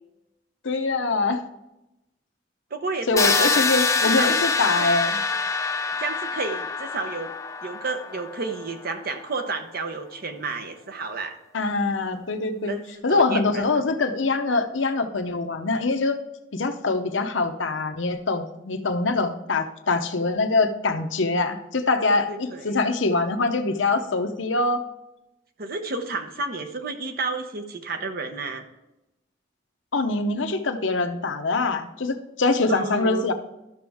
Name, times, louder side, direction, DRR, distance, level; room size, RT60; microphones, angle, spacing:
voice 1, 0.6-1.4 3.1-5.2 11.5-12.7 13.0-16.2 16.5-24.8 29.9-33.3, left 3 dB, 80° left, 6 dB, 0.8 m, -24 dB
voice 2, 2.7-3.7 4.0-4.4 4.7-4.9 6.0-7.3 7.6-11.4 12.6-12.8 13.1-13.8 22.3-22.8 25.6-28.6 32.7-33.3, right 3 dB, 55° right, 6 dB, 1.0 m, -31 dB
sound 1, 3.2-9.0, left 5 dB, 15° left, 0.6 m, -25 dB
13.0 x 6.1 x 3.5 m, 0.92 s
head